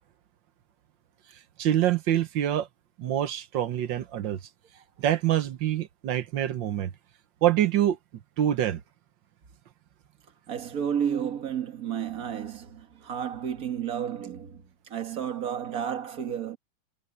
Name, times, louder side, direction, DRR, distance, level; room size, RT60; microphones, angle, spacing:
voice 1, 1.6-2.7 3.0-4.4 5.0-6.9 7.4-8.0 8.4-8.8, right 11 dB, 75° right, 1.6 m, -25 dB
voice 2, 10.5-16.6, right 8 dB, 50° right, 2.1 m, -32 dB
omnidirectional pair, 2.1 m